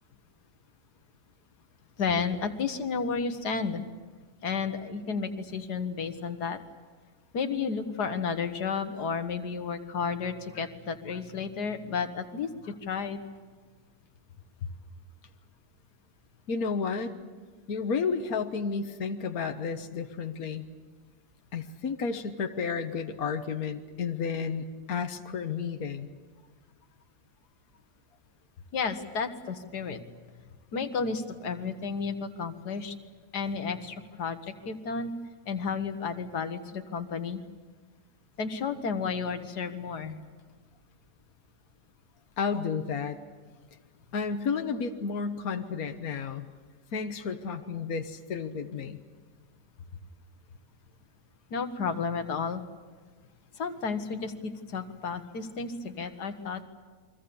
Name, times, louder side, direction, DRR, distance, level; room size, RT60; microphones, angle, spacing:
voice 1, 2.0-3.8 4.4-6.6 7.3-13.2 28.7-30.0 30.7-33.0 33.3-35.1 35.5-37.4 38.4-40.2 51.5-52.6 53.6-56.6, left 5 dB, 85° left, 8 dB, 1.9 m, -32 dB
voice 2, 16.5-17.2 17.7-20.7 21.5-26.1 42.4-43.2 44.1-46.5 46.9-49.0, left 5 dB, 65° left, 5 dB, 1.7 m, -32 dB
29.0 x 23.5 x 7.0 m, 1.4 s
omnidirectional pair, 1.7 m